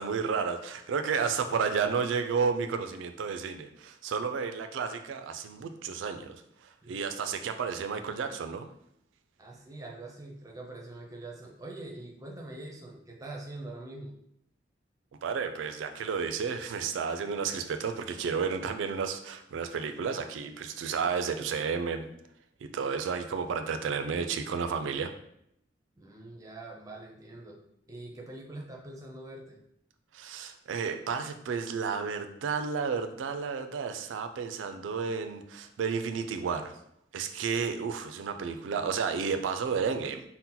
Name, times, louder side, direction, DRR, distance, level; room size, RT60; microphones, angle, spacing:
voice 1, 0.0-8.7 15.2-22.1 22.6-25.1 30.1-36.7 37.1-40.2, right 6 dB, 85° right, 7 dB, 0.3 m, -32 dB
voice 2, 9.4-14.1 26.0-27.6 27.9-29.6, right 2 dB, 20° right, 0 dB, 0.5 m, -44 dB
2.8 x 2.1 x 3.7 m, 0.74 s
head